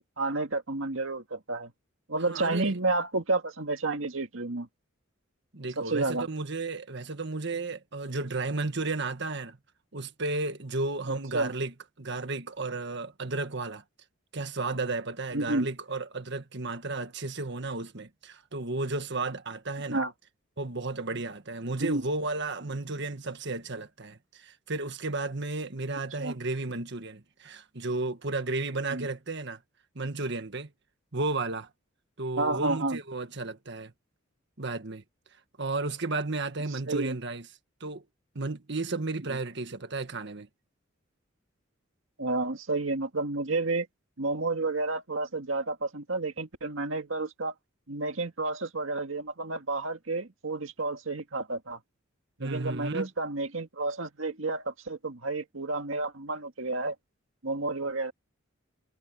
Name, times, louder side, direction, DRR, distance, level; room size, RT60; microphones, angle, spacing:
voice 1, 0.2-1.7 2.1-4.7 5.8-6.3 11.1-11.5 15.3-15.7 19.9-20.1 21.8-22.0 26.2-26.3 28.9-29.1 32.4-33.0 36.9-37.2 39.3-39.4 42.2-43.9 44.2-47.5 47.9-51.8 52.4-57.0 57.4-58.1, right 2 dB, 75° right, 2.0 m, -30 dB
voice 2, 2.3-2.8 5.5-9.6 9.9-13.8 14.3-20.0 20.6-29.6 29.9-30.7 31.1-31.7 32.2-33.9 34.6-35.0 35.6-37.4 37.8-38.0 38.3-40.5 52.4-53.1, right 3 dB, 60° right, 1.6 m, -33 dB
head